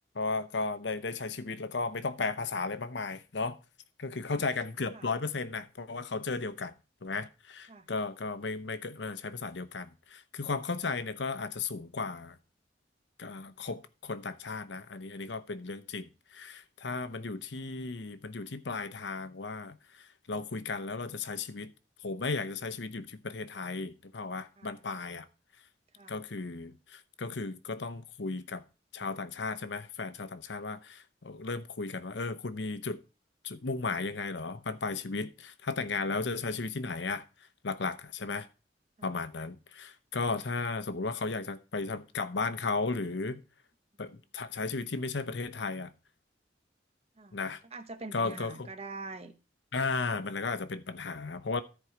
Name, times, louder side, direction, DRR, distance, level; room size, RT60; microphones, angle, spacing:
voice 1, 0.1-3.6 4.0-6.7 7.0-12.4 13.2-21.7 22.0-25.3 26.1-28.6 28.9-33.0 33.4-37.2 37.6-38.5 39.0-43.4 44.0-45.9 47.3-47.6 48.1-48.7 49.7-51.6, left 4 dB, 75° left, 0.8 m, -35 dB
voice 2, 47.2-49.3, right 3 dB, 35° right, 1.0 m, -45 dB
13.5 x 4.6 x 4.9 m
head